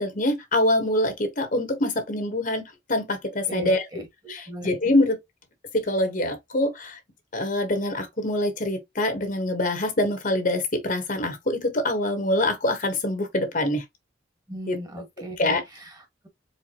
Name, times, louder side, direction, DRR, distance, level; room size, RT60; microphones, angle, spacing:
voice 1, 0.0-3.8 4.3-5.2 5.7-7.0 7.3-13.8 14.7-14.8 15.4-15.6, left 1 dB, 50° left, 1.3 m, -25 dB
voice 2, 3.5-4.7 14.5-16.3, equal, 20° right, 1.7 m, -37 dB
4.6 x 3.4 x 2.9 m
head